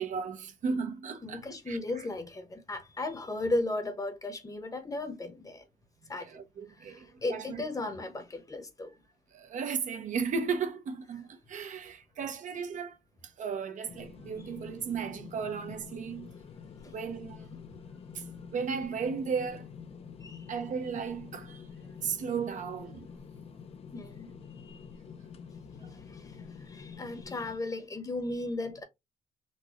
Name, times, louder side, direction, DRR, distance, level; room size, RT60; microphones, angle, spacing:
voice 1, 0.0-2.0 6.3-7.6 9.3-13.0 13.2-16.3 16.9-17.6 18.1-18.2 18.5-19.7 20.5-21.6 22.0-23.1, right 6 dB, 65° right, 0.7 m, -35 dB
voice 2, 1.2-5.6 6.1-6.3 6.8-8.9 17.8-17.9 20.2-20.4 23.9-24.3 24.6-24.8 25.8-28.8, left 2 dB, 25° left, 0.9 m, -36 dB
sound 1, 13.9-27.6, left 6 dB, 45° left, 0.5 m, -47 dB
4.0 x 2.2 x 2.9 m
cardioid pair, 105°, 14 cm